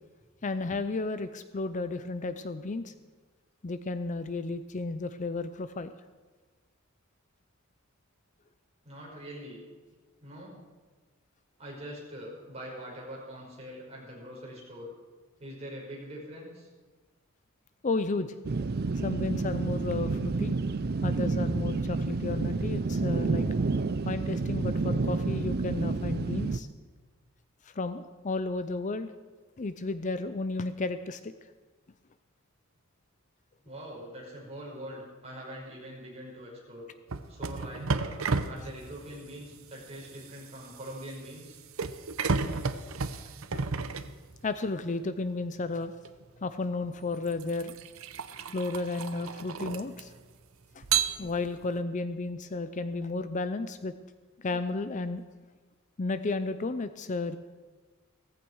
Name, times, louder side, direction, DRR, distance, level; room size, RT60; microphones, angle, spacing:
voice 1, 0.4-2.9 3.6-5.9 17.8-18.3 19.0-20.5 21.0-23.5 24.0-26.7 27.6-29.1 29.6-31.3 43.5-43.6 44.4-46.0 46.4-47.8 48.5-50.1 50.7-50.8 51.2-53.9 54.4-55.2 56.0-57.4, left 3 dB, 35° left, 11 dB, 0.5 m, -33 dB
voice 2, 8.8-9.6 10.2-10.6 11.6-14.9 15.4-16.7 33.6-36.9 37.3-38.2 38.4-41.6, equal, 30° right, -3 dB, 5.4 m, -43 dB
sound 1, 18.4-26.6, right 3 dB, 50° right, 0.5 m, -29 dB
sound 2, 37.1-44.7 46.0-46.2 46.9-50.3 50.8-51.7, right 5 dB, 75° right, 0.8 m, -33 dB
17.0 x 15.0 x 4.8 m, 1.3 s
head